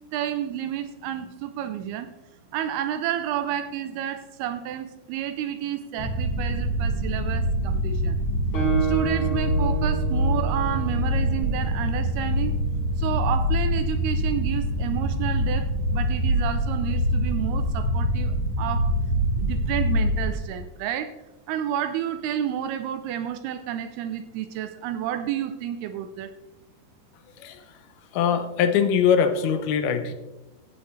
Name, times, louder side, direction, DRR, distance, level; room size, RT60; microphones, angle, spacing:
voice 1, 0.1-2.1 2.5-8.2 8.8-12.6 13.0-18.9 19.4-21.2 21.5-26.3, right 10 dB, 80° right, 9 dB, 2.4 m, -30 dB
sound 1, 6.0-20.3, equal, 60° left, 1.1 m, -25 dB
Guitar, 8.5-12.2, right 7 dB, 40° left, 4.4 m, -30 dB
voice 2, 28.1-30.1, left 7 dB, 75° left, 9 dB, 2.6 m, -22 dB
14.5 x 9.1 x 3.2 m, 1.0 s
omnidirectional pair, 4.9 m